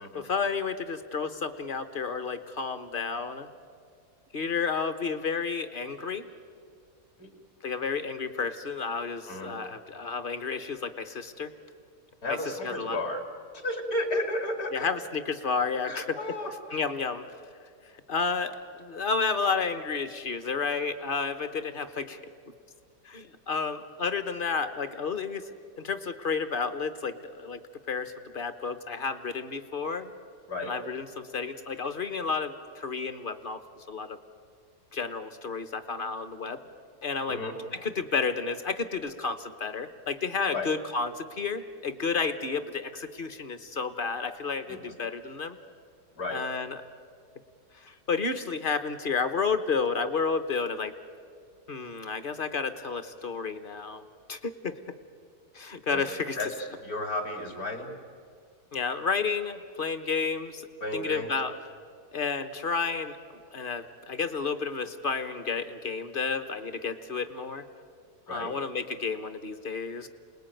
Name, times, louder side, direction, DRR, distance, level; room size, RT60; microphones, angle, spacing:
voice 1, 0.1-3.5 4.3-6.3 7.6-11.5 12.3-13.0 14.7-16.2 16.7-17.3 18.1-22.2 23.0-27.6 27.9-30.1 30.6-33.6 33.9-34.2 34.9-36.6 37.0-37.4 37.7-45.6 46.3-46.8 47.7-50.9 51.7-54.0 54.3-54.8 55.5-56.4 58.7-61.5 62.1-63.2 63.5-67.6 68.3-70.1, left 5 dB, 35° left, 11 dB, 1.2 m, -31 dB
voice 2, 9.3-9.6 12.2-13.2 13.6-14.9 15.8-16.8 30.5-30.7 37.3-37.5 40.5-40.7 44.7-44.8 46.2-46.4 55.9-56.0 56.4-56.5 56.8-57.9 60.8-61.3 68.3-68.5, left 1 dB, 60° left, 5 dB, 3.1 m, -33 dB
28.0 x 20.0 x 9.2 m, 2.2 s
omnidirectional pair, 1.7 m